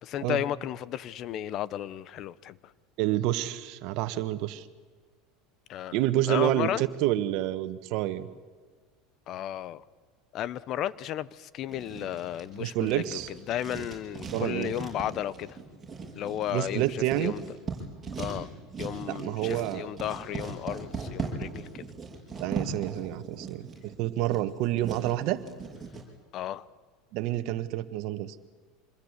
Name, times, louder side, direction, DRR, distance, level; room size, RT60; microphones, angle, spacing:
voice 1, 0.0-2.6 5.7-6.0 6.3-6.8 9.3-9.8 10.3-15.6 16.2-17.4 18.2-18.5 18.8-21.8 26.3-26.6, left 11 dB, 45° left, 19 dB, 0.9 m, -34 dB
voice 2, 3.0-4.6 5.9-8.3 12.5-13.3 14.3-14.7 16.5-17.3 19.1-19.9 22.4-25.4 27.1-28.3, right 14 dB, 60° right, 12 dB, 1.6 m, -28 dB
Writing, 11.7-26.0, right 4 dB, 15° right, 7.1 m, -39 dB
26.5 x 21.5 x 8.3 m, 1.5 s
supercardioid pair, 125°, 0 cm